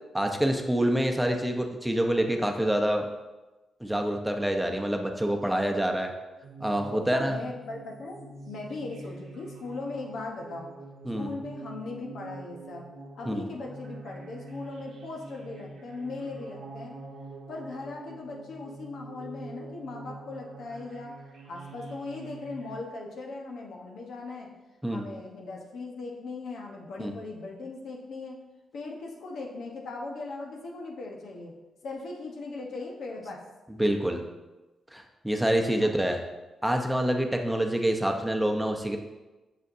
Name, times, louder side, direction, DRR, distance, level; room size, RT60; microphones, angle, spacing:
voice 1, 0.1-3.0 3.8-6.1 6.6-7.4 11.0-11.3 13.3-13.5 24.8-25.1 27.0-27.1 33.8-34.2 34.9-36.2 36.6-39.0, right 1 dB, 5° right, 3 dB, 0.8 m, -26 dB
sound 1, 6.4-22.7, right 3 dB, 75° right, 1.0 m, -45 dB
voice 2, 6.9-10.7 11.2-12.8 13.1-16.9 17.5-21.1 21.4-24.5 24.9-28.4 28.7-31.5 31.8-33.4 35.8-35.9, left 3 dB, 75° left, 0 dB, 1.0 m, -39 dB
6.5 x 6.3 x 2.7 m, 1.1 s
supercardioid pair, 60°, 0 cm